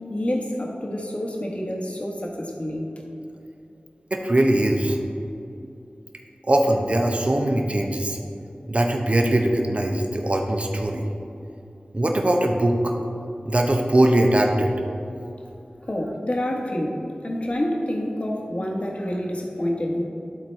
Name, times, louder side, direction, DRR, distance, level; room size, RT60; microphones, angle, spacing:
voice 1, 0.1-2.9 15.8-20.0, left 1 dB, 40° left, 0 dB, 1.3 m, -28 dB
voice 2, 4.1-5.0 6.4-8.2 8.7-11.0 11.9-12.9 13.5-14.7, right 1 dB, 40° right, 2 dB, 0.8 m, -21 dB
11.5 x 4.0 x 4.5 m, 2.7 s
wide cardioid pair, 45°, 3 cm